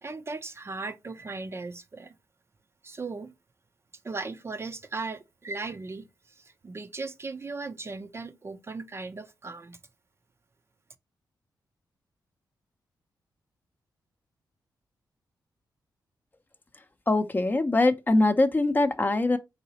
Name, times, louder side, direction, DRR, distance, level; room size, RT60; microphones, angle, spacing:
voice 1, 0.0-2.2 2.8-3.3 4.0-9.8, right 3 dB, 35° right, 0.5 m, -37 dB
voice 2, 16.7-19.4, left 2 dB, 25° left, 0.6 m, -23 dB
4.0 x 3.8 x 2.8 m
cardioid pair, 75°, 7 cm